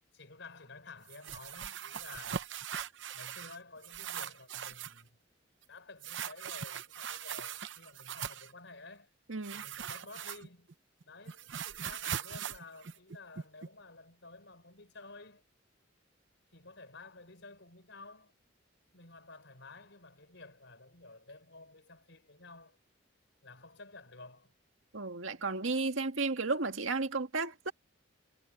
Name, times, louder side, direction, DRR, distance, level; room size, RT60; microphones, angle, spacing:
voice 1, 0.1-2.5 3.1-5.2 5.7-9.1 9.5-10.7 11.0-15.4 16.5-18.3 18.9-22.8 23.4-24.5, left 3 dB, 65° left, 6.0 m, -52 dB
sound 1, 1.1-3.6 3.8-5.0 6.0-8.5 9.4-10.7 11.0-13.7, right 8 dB, 65° right, 0.7 m, -41 dB
voice 2, 9.3-9.6 24.9-27.7, right 3 dB, 80° right, 1.9 m, -33 dB
head